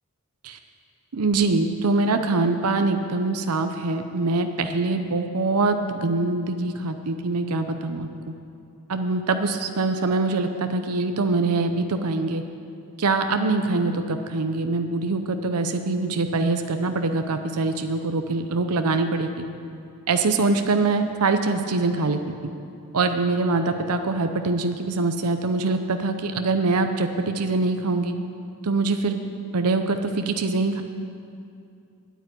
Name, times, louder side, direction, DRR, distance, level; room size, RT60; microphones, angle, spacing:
voice 1, 1.1-8.3 8.9-12.4 13.0-19.5 20.1-22.2 22.9-28.1 28.6-29.2 29.5-30.8, right 3 dB, 80° right, 7 dB, 0.7 m, -24 dB
9.1 x 9.1 x 9.8 m, 2.6 s
head